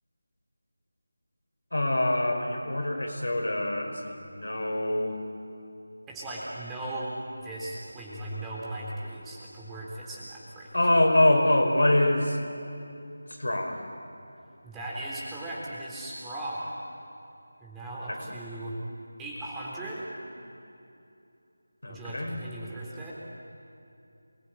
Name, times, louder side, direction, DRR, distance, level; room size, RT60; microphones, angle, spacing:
voice 1, 1.7-5.2 10.7-12.4 13.3-13.9 18.1-18.4 21.8-22.4, left 1 dB, 65° left, 3 dB, 5.1 m, -25 dB
voice 2, 6.1-7.1 7.4-10.8 14.6-16.7 17.6-18.8 19.2-20.1 21.9-23.1, right 1 dB, 5° right, -6 dB, 3.8 m, -37 dB
28.0 x 21.5 x 9.2 m, 2.7 s
figure-of-eight pair, 165°, 0 cm